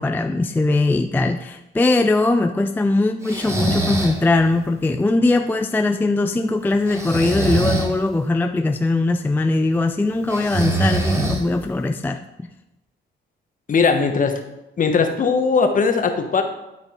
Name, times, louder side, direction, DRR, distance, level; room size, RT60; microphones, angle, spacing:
voice 1, 0.0-12.2, left 2 dB, 10° left, 7 dB, 0.3 m, -20 dB
Breathing, 3.2-4.2 6.9-7.9 10.3-11.7, right 1 dB, 15° right, 1.4 m, -23 dB
voice 2, 13.7-14.4 14.8-16.4, left 5 dB, 40° left, 5 dB, 1.1 m, -19 dB
11.5 x 4.1 x 3.6 m, 0.95 s
cardioid pair, 90°, 20 cm